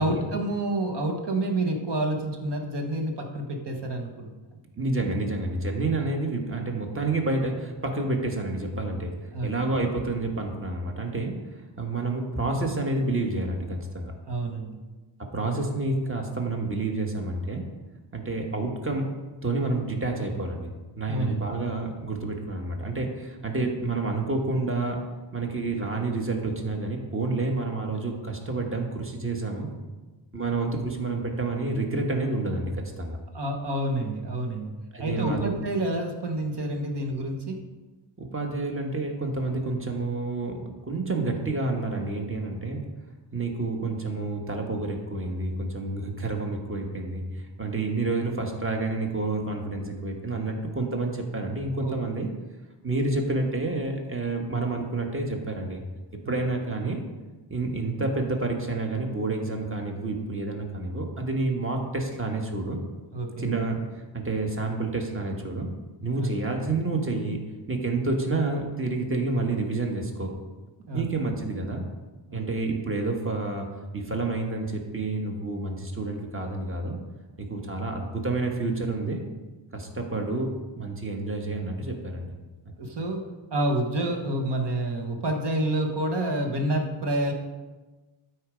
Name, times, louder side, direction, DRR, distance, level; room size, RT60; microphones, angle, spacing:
voice 1, 0.0-4.3 9.3-9.5 14.3-14.8 21.1-21.4 33.3-34.7 35.0-37.6 51.8-52.0 56.2-56.4 63.1-63.6 66.2-66.3 70.9-71.1 72.3-72.4 82.8-83.2 83.5-87.3, right 1 dB, 60° right, 3 dB, 1.5 m, -28 dB
voice 2, 4.8-9.1 9.4-11.3 11.8-14.1 15.3-17.6 18.1-19.1 19.4-20.7 21.0-25.0 25.3-29.7 30.3-33.2 34.9-35.5 38.2-42.8 43.3-47.2 47.6-52.3 52.8-55.8 56.3-57.0 57.5-62.8 63.4-63.8 64.1-65.7 66.0-67.4 67.7-70.3 70.9-71.8 72.3-73.7 73.9-77.0 77.4-79.2 79.7-82.3 82.6-82.7, right 2 dB, 30° right, 2 dB, 1.4 m, -29 dB
12.0 x 4.7 x 5.1 m, 1.2 s
wide cardioid pair, 135°, 45 cm